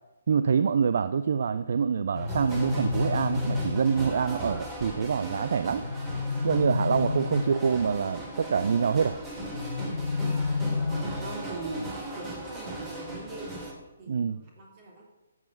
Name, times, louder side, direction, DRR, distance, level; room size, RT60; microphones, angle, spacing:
voice 1, 0.3-5.9 6.4-9.2 14.1-14.4, right 6 dB, 60° right, 12 dB, 0.5 m, -26 dB
sound 1, 2.1-4.1 5.8-7.8 9.5-11.5, left 3 dB, 75° left, 0.5 m, -30 dB
sound 2, 2.1-13.7, right 1 dB, 15° right, 3.1 m, -38 dB
voice 2, 10.9-13.5 14.0-15.0, right 3 dB, 35° right, -1 dB, 3.1 m, -41 dB
12.0 x 7.4 x 7.9 m, 1.1 s
figure-of-eight pair, 140°, 0 cm